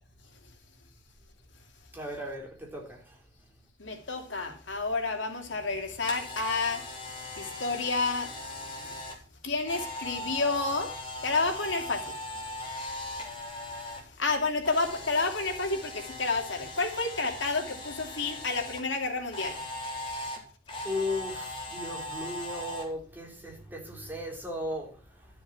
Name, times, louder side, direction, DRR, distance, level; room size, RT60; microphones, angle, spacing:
voice 1, 1.9-3.2 20.8-25.3, left 1 dB, 10° right, 3.6 m, -36 dB
voice 2, 3.8-9.0 9.4-10.9 11.2-12.2 13.8-19.6, left 3 dB, 90° left, 2.8 m, -30 dB
Camera, 5.7-14.0 14.3-18.8 19.3-22.8, left 1 dB, 30° left, 3.7 m, -39 dB
13.0 x 7.1 x 6.0 m
head